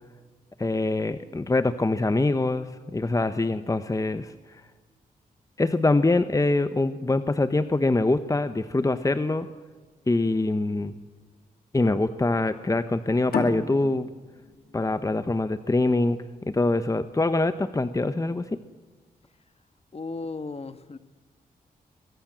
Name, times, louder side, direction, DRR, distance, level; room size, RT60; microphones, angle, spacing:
voice 1, 0.6-4.3 5.6-9.5 10.1-10.9 11.7-14.1 14.7-16.2 16.5-18.4, left 2 dB, 20° left, 11 dB, 1.0 m, -24 dB
sound 1, 13.3-16.5, left 5 dB, 80° left, 2.5 m, -34 dB
voice 2, 19.9-21.0, left 3 dB, 40° left, 12 dB, 1.4 m, -35 dB
22.5 x 22.5 x 7.6 m, 1.3 s
cardioid pair, 70°, 16 cm